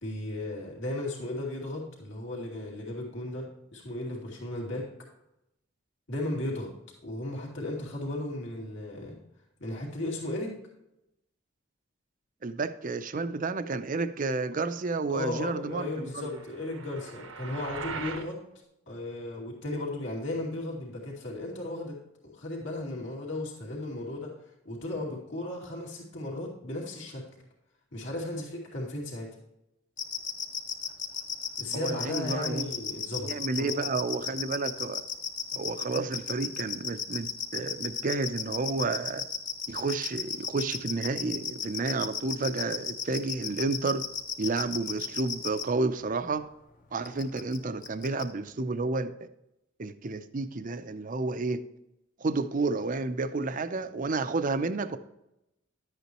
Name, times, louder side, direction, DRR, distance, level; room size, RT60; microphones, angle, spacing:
voice 1, 0.0-4.9 6.1-6.7 7.0-9.2 9.6-10.6 15.1-18.4 18.9-22.0 22.2-24.3 24.6-27.2 27.9-29.3 31.6-33.9, left 1 dB, 65° left, -2 dB, 2.5 m, -35 dB
voice 2, 12.4-16.3 31.7-32.6 33.2-35.0 35.5-39.2 39.7-44.0 44.4-46.5 46.9-49.3 49.8-51.6 52.2-55.0, right 3 dB, 40° right, 11 dB, 0.5 m, -31 dB
sound 1, 16.1-18.3, right 4 dB, 85° right, 1.0 m, -40 dB
sound 2, 30.0-45.6 47.0-47.6 47.8-48.2, left 7 dB, 40° left, 1.0 m, -33 dB
11.0 x 8.2 x 3.0 m, 0.86 s
head